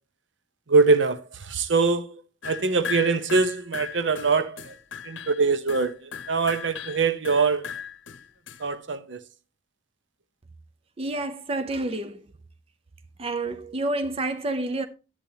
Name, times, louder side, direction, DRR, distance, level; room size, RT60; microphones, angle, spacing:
voice 1, 0.7-4.7 5.0-7.7 8.6-9.2, right 4 dB, 75° right, 0.8 m, -23 dB
sound 1, 2.4-8.7, left 7 dB, 90° left, 0.7 m, -37 dB
voice 2, 11.0-12.2 13.2-14.9, right 2 dB, 30° right, 0.5 m, -29 dB
10.5 x 8.6 x 2.8 m
head